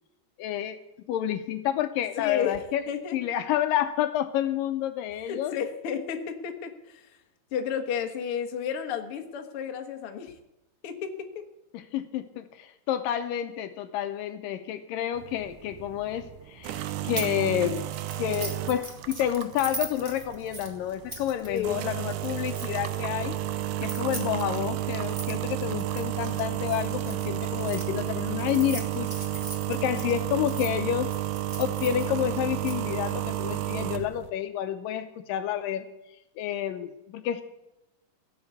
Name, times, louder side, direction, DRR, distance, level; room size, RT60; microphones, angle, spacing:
voice 1, 0.4-0.8 1.1-2.8 3.1-5.6 11.7-17.9 18.2-23.4 23.8-29.4 29.7-31.1 31.6-35.9 36.4-37.4, left 11 dB, 75° left, 9 dB, 2.3 m, -29 dB
voice 2, 2.2-2.6 2.9-3.2 5.1-7.2 7.5-10.3 10.8-11.1 11.4-11.5 21.4-21.9, left 8 dB, 55° left, 5 dB, 1.6 m, -32 dB
sound 1, 15.2-34.3, right 13 dB, 75° right, 2.0 m, -32 dB
sound 2, 17.2-17.4 17.7-23.0 23.7-27.8 28.4-30.7 31.1-32.7, right 2 dB, 25° right, 1.0 m, -40 dB
17.0 x 6.8 x 8.3 m, 0.93 s
omnidirectional pair, 4.2 m